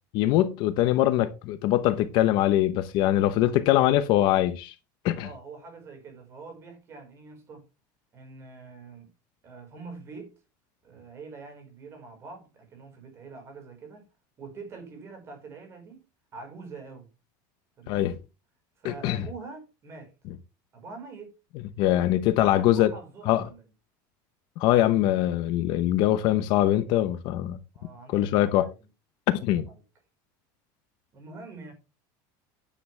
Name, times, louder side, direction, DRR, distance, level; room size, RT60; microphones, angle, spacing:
voice 1, 0.1-4.7 5.0-5.3 17.9-18.1 18.8-19.2 21.8-22.9 23.3-23.4 24.6-27.6 28.1-28.7 29.3-29.7, left 13 dB, 45° left, 0.9 m, -23 dB
voice 2, 5.2-7.6 8.1-9.1 9.4-10.3 10.8-14.0 14.4-16.0 16.3-17.1 17.8-18.1 18.8-20.1 20.7-21.3 22.4-23.6 27.7-28.7 29.3-29.6 31.1-31.7, right 4 dB, 25° right, 4.8 m, -44 dB
10.0 x 9.9 x 3.3 m
cardioid pair, 175°, 10 cm